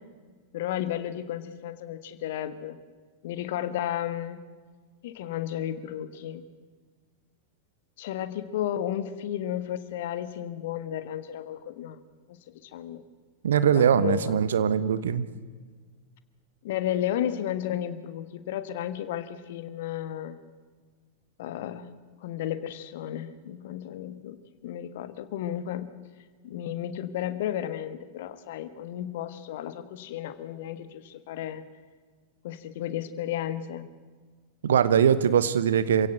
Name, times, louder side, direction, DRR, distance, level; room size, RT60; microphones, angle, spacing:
voice 1, 0.5-2.8 3.2-4.4 5.0-6.5 8.0-12.0 12.3-13.0 13.7-14.4 16.6-20.4 21.4-21.9 22.2-24.4 24.6-25.9 26.4-31.6 32.4-33.9, left 11 dB, 55° left, 12 dB, 1.6 m, -33 dB
voice 2, 13.4-15.3 34.6-36.1, right 8 dB, 65° right, 14 dB, 1.1 m, -22 dB
27.0 x 16.5 x 7.9 m, 1.5 s
figure-of-eight pair, 90°, 0 cm